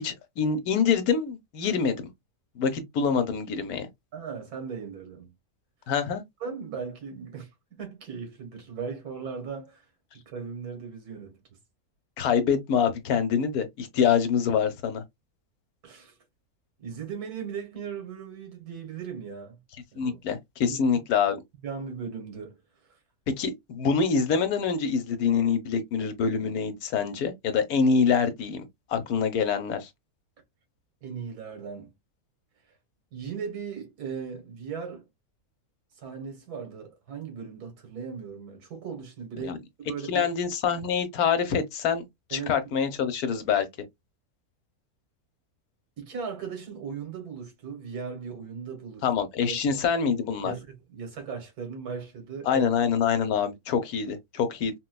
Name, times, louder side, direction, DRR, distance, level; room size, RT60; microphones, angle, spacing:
voice 1, 0.0-2.0 2.6-3.9 5.9-6.2 12.2-15.0 20.0-21.4 23.4-28.6 28.9-29.9 39.4-39.6 40.1-42.0 42.3-43.7 49.0-50.5 52.5-54.7, left 6 dB, 80° left, 1.2 m, -25 dB
voice 2, 4.1-5.3 6.4-9.9 10.3-11.4 15.8-16.2 16.8-19.6 19.9-20.2 20.6-21.0 21.6-22.6 31.0-31.9 33.1-35.1 36.0-40.3 42.3-42.7 46.0-49.1 49.5-49.8 50.4-52.7, right 6 dB, 85° right, 1.8 m, -38 dB
4.3 x 2.2 x 2.2 m
omnidirectional pair, 1.6 m